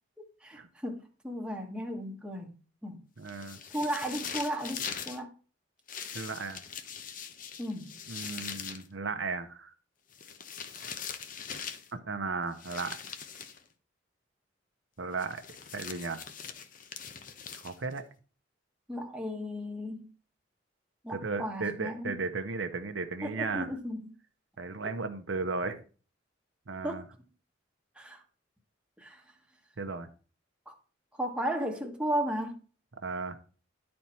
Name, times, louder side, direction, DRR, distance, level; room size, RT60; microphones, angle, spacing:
voice 1, 0.4-2.5 2.8-3.0 3.7-5.3 7.6-7.9 18.9-20.1 21.0-22.2 23.2-24.1 24.8-24.9 26.8-27.1 28.0-28.2 29.0-29.2 30.7-30.8 31.2-32.6, equal, 5° right, 1.2 m, -35 dB
voice 2, 3.2-3.6 6.1-6.6 8.1-9.7 11.9-13.0 15.0-15.4 15.7-16.2 17.6-18.0 21.1-23.7 24.6-25.8 26.7-27.0 29.8-30.1 33.0-33.4, right 4 dB, 75° right, 0.8 m, -35 dB
sound 1, 3.3-5.2 5.9-8.9 10.1-11.9 12.6-13.6 15.2-18.0, left 7 dB, 45° left, 0.8 m, -41 dB
11.0 x 4.3 x 4.3 m
head